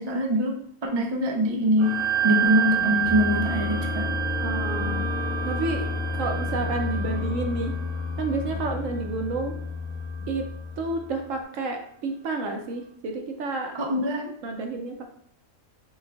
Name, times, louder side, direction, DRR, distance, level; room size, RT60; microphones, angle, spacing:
voice 1, 0.0-1.9 2.2-4.1 13.7-14.3, equal, 40° right, 1 dB, 0.3 m, -24 dB
sound 1, 1.8-10.6, right 7 dB, 85° right, 1.2 m, -30 dB
sound 2, 2.5-11.3, left 5 dB, 50° left, 1.9 m, -32 dB
voice 2, 4.4-5.1 5.5-5.9 6.2-7.7 8.2-9.5 10.3-10.4 10.8-13.7 14.4-15.0, right 3 dB, 70° right, 3 dB, 1.1 m, -30 dB
5.2 x 2.4 x 3.4 m, 0.63 s
omnidirectional pair, 1.5 m